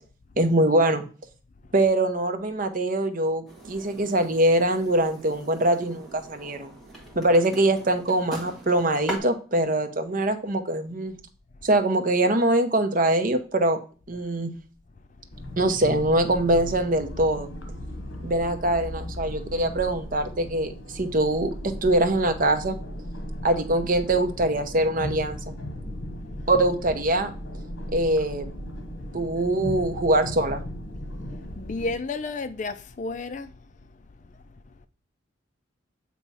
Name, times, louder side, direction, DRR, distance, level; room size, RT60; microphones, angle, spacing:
voice 1, 0.4-1.0 1.7-6.7 7.2-11.2 11.6-13.8 14.1-14.5 15.6-17.5 18.2-22.8 23.4-25.5 26.5-27.3 27.9-28.5 29.1-30.6, right 1 dB, 45° right, 0.8 m, -23 dB
sound 1, 3.5-9.2, right 1 dB, ahead, 1.6 m, -40 dB
sound 2, 15.3-31.9, equal, 80° left, 1.1 m, -36 dB
voice 2, 31.6-33.5, left 3 dB, 40° left, 0.4 m, -31 dB
8.2 x 3.0 x 5.4 m
head